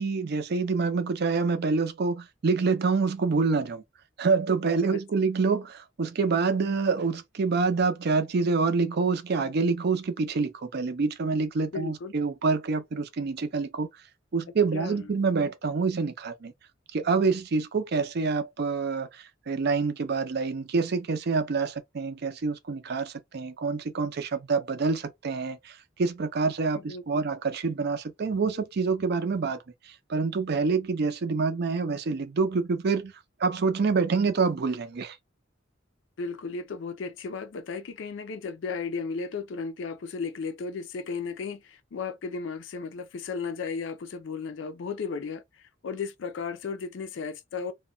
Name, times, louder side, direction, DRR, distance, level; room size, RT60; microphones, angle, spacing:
voice 1, 0.0-3.8 4.2-13.9 14.3-16.5 16.9-29.6 30.1-33.1 33.4-35.2, right 4 dB, 55° right, 0.5 m, -27 dB
voice 2, 11.7-12.1 14.7-15.1 26.9-27.0 36.2-47.7, left 5 dB, 65° left, 0.4 m, -35 dB
2.2 x 2.1 x 3.7 m
head